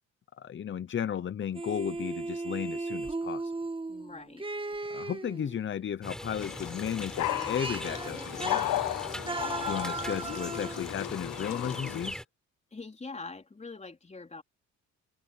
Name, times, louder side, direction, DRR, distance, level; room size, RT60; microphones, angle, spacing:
voice 1, 0.4-3.5 4.9-8.8 9.6-12.2, left 8 dB, 40° left, 0.8 m, -34 dB
sound 1, 1.5-5.7 6.8-6.9 7.2-10.9, right 3 dB, 15° right, 1.9 m, -37 dB
voice 2, 3.9-4.5 12.7-14.4, left 3 dB, 20° left, 4.1 m, -43 dB
sound 2, 6.0-12.2, equal, ahead, 5.9 m, -41 dB
sound 3, 6.4-12.1, left 14 dB, 85° left, 1.2 m, -35 dB
cardioid pair, 90°, 30 cm